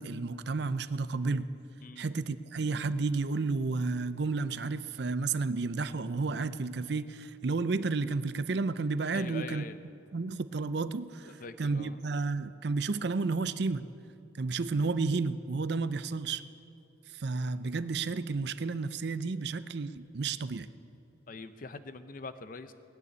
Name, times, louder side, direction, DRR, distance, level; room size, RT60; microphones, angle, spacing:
voice 1, 0.0-1.5 2.0-9.6 10.1-13.9 14.4-16.4 17.1-20.7, right 4 dB, 55° right, 14 dB, 0.5 m, -32 dB
voice 2, 9.1-9.8 11.2-12.1 21.3-22.7, left 3 dB, 45° left, 11 dB, 0.6 m, -43 dB
19.5 x 6.8 x 9.6 m, 2.8 s
head